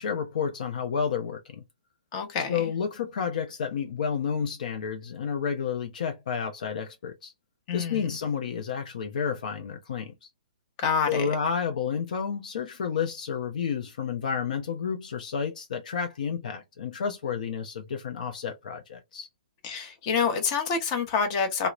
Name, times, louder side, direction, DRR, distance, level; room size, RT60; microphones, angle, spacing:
voice 1, 0.0-1.6 2.5-7.3 7.7-10.3 11.1-19.3, left 6 dB, 65° left, 0.5 m, -30 dB
voice 2, 2.1-2.7 7.7-8.0 10.8-11.3 19.6-21.7, left 6 dB, 35° left, 0.8 m, -27 dB
2.9 x 2.0 x 2.3 m
hypercardioid pair, 140°, 5 cm